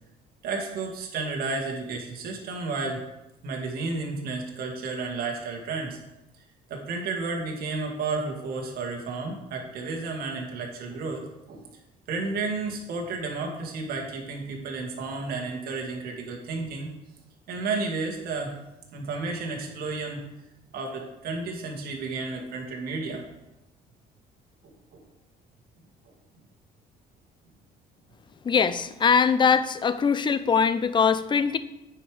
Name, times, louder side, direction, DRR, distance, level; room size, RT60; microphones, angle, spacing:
voice 1, 0.4-3.0 3.4-6.0 6.7-11.7 12.1-16.9 17.5-18.5 18.9-20.2 20.7-23.2 24.9-25.0, right 3 dB, 65° right, 0 dB, 1.9 m, -32 dB
voice 2, 28.4-31.6, left 6 dB, 30° left, 13 dB, 0.5 m, -22 dB
9.7 x 5.0 x 4.9 m, 0.92 s
cardioid pair, 110°, 17 cm